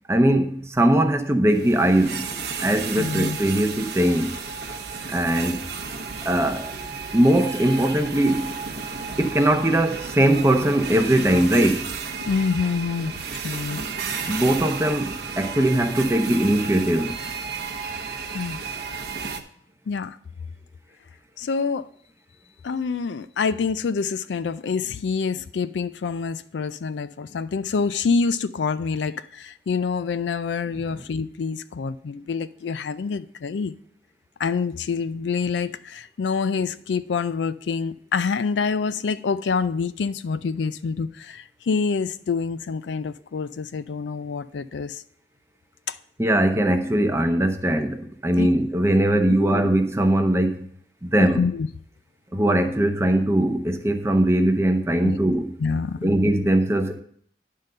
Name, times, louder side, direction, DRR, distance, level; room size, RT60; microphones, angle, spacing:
voice 1, 0.1-2.3 2.6-4.4 5.1-5.7 6.2-6.7 7.1-8.5 9.2-11.9 14.3-17.2 46.2-50.7 51.0-51.4 52.3-55.5 56.0-57.0, right 1 dB, 15° right, 0.7 m, -20 dB
sound 1, 1.5-19.4, right 5 dB, 60° right, 0.8 m, -33 dB
voice 2, 3.0-3.4 12.3-13.2 13.4-13.8 18.3-18.6 19.9-20.2 21.4-21.9 22.6-33.8 34.4-45.0 45.9-46.0 48.4-48.5 49.4-49.7 51.2-51.7 55.0-55.2 55.6-56.1, left 5 dB, 85° left, 0.4 m, -26 dB
10.5 x 3.8 x 6.6 m
head